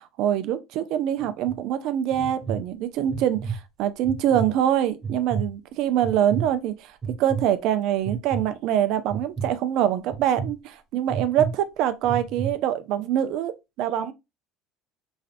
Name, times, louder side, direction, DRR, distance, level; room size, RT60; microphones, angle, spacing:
voice 1, 0.0-13.5 13.8-14.1, right 10 dB, 65° right, 0.4 m, -24 dB
sound 1, 1.2-1.5 2.1-2.6 3.1-3.5 4.0-4.5 5.0-5.5 6.0-6.4 7.0-7.4 8.0-8.4 9.1-9.4 10.1-10.5 11.1-11.5 12.0-12.5, right 6 dB, 30° right, 1.1 m, -29 dB
3.1 x 2.6 x 2.4 m
cardioid pair, 125°, 0 cm